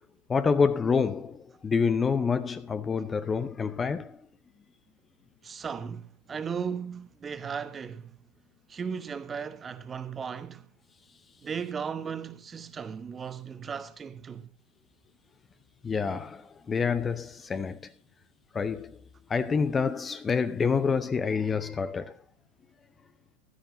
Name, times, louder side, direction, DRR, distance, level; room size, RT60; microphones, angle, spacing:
voice 1, 0.3-4.2 15.8-17.9 18.5-19.0 19.3-22.2, left 5 dB, 15° left, 0.6 m, -27 dB
voice 2, 5.4-8.2 8.7-10.7 11.4-14.5, right 6 dB, 20° right, 1.1 m, -36 dB
16.0 x 12.0 x 2.6 m
figure-of-eight pair, 90°, 0 cm